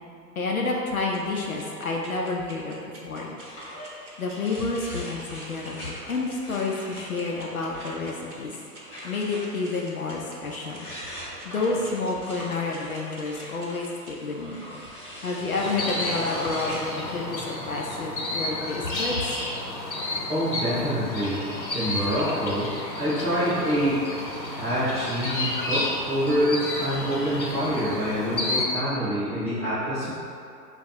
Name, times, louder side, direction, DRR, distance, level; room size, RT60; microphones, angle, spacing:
voice 1, 0.4-2.7 3.0-3.3 4.2-8.5 9.0-10.9 11.4-13.9 14.2-14.7 15.2-19.4, left 3 dB, 60° left, -1 dB, 0.6 m, -29 dB
sound 1, 1.1-14.1, right 2 dB, 45° right, 0.8 m, -47 dB
sound 2, 3.4-17.1, equal, 20° left, 0.8 m, -41 dB
sound 3, 15.6-28.7, left 2 dB, 85° left, 0.8 m, -31 dB
voice 2, 20.3-21.4 21.7-22.7 23.0-24.0 24.5-30.1, equal, 15° right, -12 dB, 0.8 m, -26 dB
3.7 x 2.3 x 4.3 m, 2.6 s
figure-of-eight pair, 125°, 50 cm